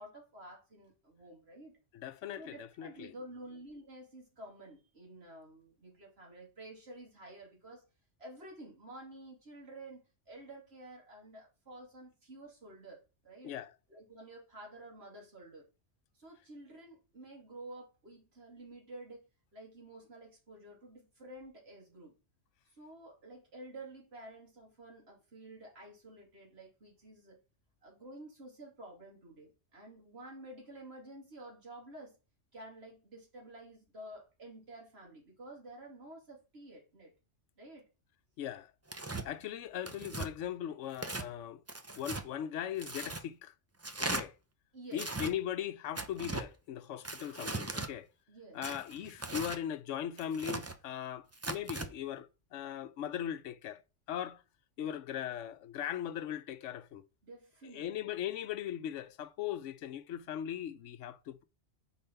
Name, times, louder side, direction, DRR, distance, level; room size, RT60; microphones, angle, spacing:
voice 1, 0.0-1.8 2.4-7.8 8.2-13.5 13.9-15.7 16.1-19.2 19.5-22.1 22.6-27.4 27.8-32.2 32.5-37.1 37.6-37.9 44.7-45.1 48.3-48.6 57.2-58.1, right 1 dB, 55° right, 2.7 m, -51 dB
voice 2, 1.9-3.1 13.4-13.7 38.4-38.7 39.2-41.6 42.0-43.5 44.0-44.3 44.9-48.1 48.5-53.8 54.1-54.4 54.8-57.0 57.7-61.4, left 10 dB, 80° left, 1.0 m, -39 dB
Tearing, 38.9-39.3 39.9-40.3 40.9-41.3 41.7-42.2 42.8-43.2 43.8-44.2 44.9-45.3 46.0-46.5 47.0-47.9 48.6-49.6 50.2-50.8 51.3-51.9, right 2 dB, 25° right, 0.3 m, -38 dB
5.4 x 4.3 x 5.6 m
omnidirectional pair, 1.2 m